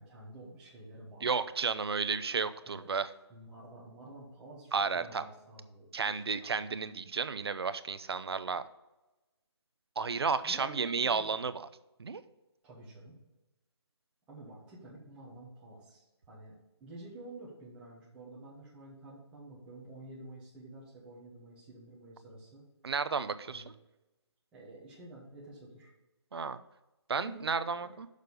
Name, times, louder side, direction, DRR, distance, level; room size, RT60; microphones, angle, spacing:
voice 1, 0.0-1.4 2.6-2.9 3.3-6.6 10.4-11.3 12.6-13.1 14.3-16.5 16.8-22.6 23.4-23.7 24.5-25.9 27.2-27.5 27.8-28.0, right 1 dB, 5° right, -7 dB, 1.4 m, -50 dB
voice 2, 1.2-3.1 4.7-5.2 5.9-8.6 10.0-11.7 12.0-12.2 22.8-23.6 26.3-26.6 27.1-28.1, right 5 dB, 65° right, 13 dB, 0.6 m, -32 dB
6.6 x 5.2 x 6.7 m, 1.0 s
hypercardioid pair, 170°, 14 cm